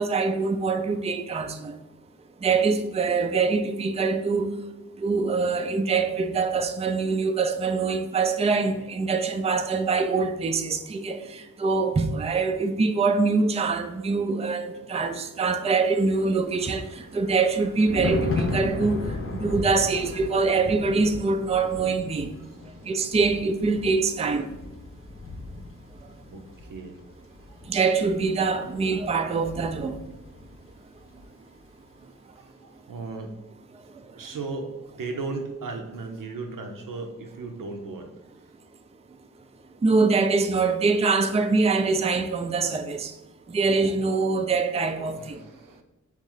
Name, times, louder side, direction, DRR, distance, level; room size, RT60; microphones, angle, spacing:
voice 1, 0.0-1.7 2.4-4.5 5.0-22.3 22.9-24.5 27.7-30.0 39.8-43.1 43.5-45.4, right 4 dB, 20° right, 0.4 m, -24 dB
Thunder, 16.1-30.7 31.0-31.3, left 2 dB, 40° left, 0.7 m, -35 dB
voice 2, 26.3-27.0 27.6-27.7 32.3-33.4 33.8-33.9 34.1-38.5 45.1-45.8, right 3 dB, 85° right, 0.6 m, -37 dB
3.6 x 3.1 x 3.8 m
cardioid pair, 50°, 32 cm